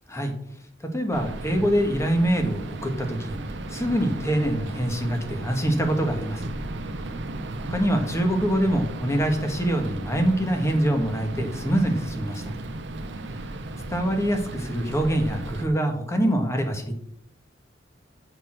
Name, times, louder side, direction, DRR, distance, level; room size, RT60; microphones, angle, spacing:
voice 1, 0.9-3.4 3.7-6.5 7.7-12.5 13.9-17.0, right 1 dB, 15° left, 4 dB, 1.4 m, -24 dB
sound 1, 1.1-15.7, right 2 dB, 65° right, 0.8 m, -35 dB
6.7 x 6.1 x 6.3 m, 0.70 s
head